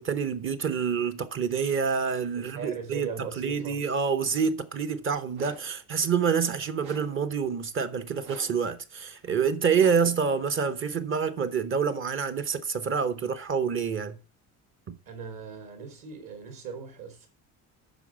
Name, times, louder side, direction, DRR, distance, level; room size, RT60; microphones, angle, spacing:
voice 1, 0.0-14.2 14.9-15.0, right 6 dB, 35° right, 0.9 m, -27 dB
voice 2, 2.3-3.8 15.1-17.3, right 5 dB, 60° right, 3.8 m, -39 dB
sound 1, 5.3-5.8 6.8-7.3 8.2-8.7 9.8-10.2, right 7 dB, 80° right, 2.0 m, -47 dB
9.1 x 6.2 x 7.4 m
cardioid pair, 165°, 38 cm